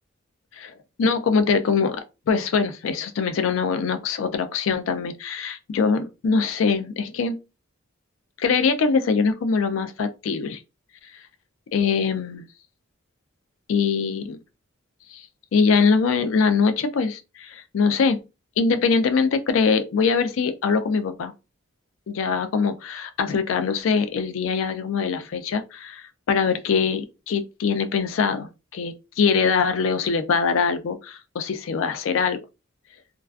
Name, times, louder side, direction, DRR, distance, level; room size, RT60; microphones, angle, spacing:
voice 1, 0.5-2.0 2.3-7.4 8.4-10.6 11.7-12.4 13.7-14.4 15.1-15.3 15.5-18.2 18.6-21.3 22.1-32.4, left 5 dB, 70° left, 0.4 m, -23 dB
2.4 x 2.2 x 2.3 m
head